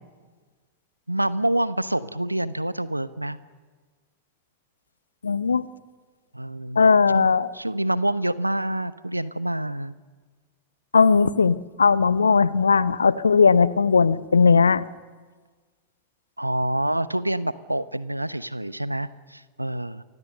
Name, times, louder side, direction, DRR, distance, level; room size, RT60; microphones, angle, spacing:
voice 1, 1.1-3.4 6.3-6.8 7.1-7.3 7.5-9.9 16.4-20.0, right 1 dB, 85° right, 16 dB, 0.9 m, -27 dB
voice 2, 5.2-5.7 6.8-7.5 10.9-14.8, left 5 dB, 75° left, 17 dB, 0.9 m, -18 dB
29.5 x 24.5 x 6.6 m, 1.4 s
figure-of-eight pair, 90°, 0 cm